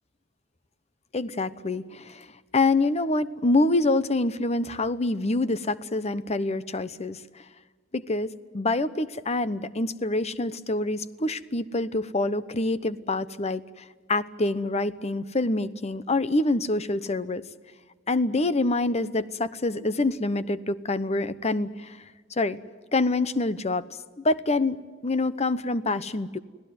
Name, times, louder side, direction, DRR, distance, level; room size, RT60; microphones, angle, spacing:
voice 1, 1.1-2.3 2.5-7.2 7.9-13.6 14.1-17.4 18.1-22.0 22.4-22.6 22.9-23.8 24.2-26.4, left 2 dB, 35° left, 14 dB, 0.9 m, -26 dB
25.0 x 17.0 x 9.6 m, 1.5 s
head